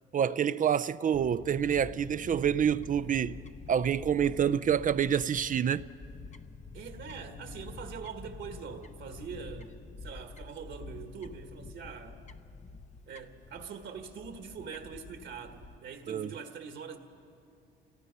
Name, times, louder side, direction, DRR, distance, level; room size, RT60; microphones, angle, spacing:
voice 1, 0.1-3.4 3.7-5.8 16.1-16.3, right 8 dB, 40° right, 0.4 m, -27 dB
Fowl / Bird, 1.1-15.8, left 3 dB, 35° left, 0.8 m, -47 dB
voice 2, 6.7-12.2 13.1-17.0, right 6 dB, 70° right, 1.8 m, -43 dB
29.0 x 18.0 x 5.5 m
cardioid pair, 90°, 20 cm